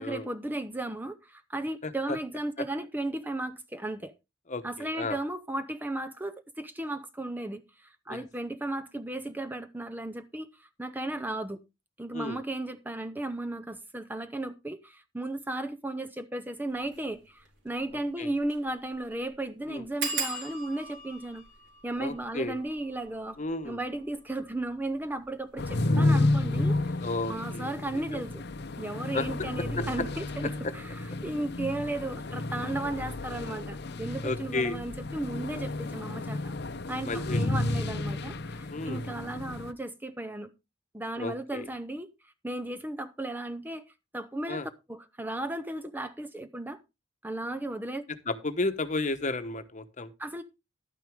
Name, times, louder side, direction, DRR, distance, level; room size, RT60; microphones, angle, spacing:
voice 1, 0.0-4.1 4.6-11.6 12.0-21.4 21.8-23.4 23.6-26.9 27.3-28.4 28.8-36.5 36.9-40.5 40.9-43.9 44.1-46.8 47.2-48.0 50.2-50.4, right 1 dB, 10° right, 0.6 m, -35 dB
voice 2, 1.8-2.2 4.5-5.2 8.1-8.2 12.1-12.4 18.2-18.3 19.7-19.8 22.0-22.6 23.4-23.8 27.0-27.7 27.9-28.2 29.1-29.3 29.8-29.9 34.2-34.8 37.0-37.4 38.7-39.0 41.2-41.7 44.5-44.7 48.3-50.1, left 2 dB, 40° left, 1.1 m, -33 dB
sound 1, 16.8-17.0 17.4-17.5 17.8-17.9 18.4-18.7 18.9-19.0 20.0-25.3 26.0-26.5 26.8-27.1 27.4-27.5, right 4 dB, 65° right, 3.6 m, -39 dB
sound 2, 25.6-39.7, left 2 dB, 60° left, 0.7 m, -31 dB
11.5 x 9.2 x 3.6 m
head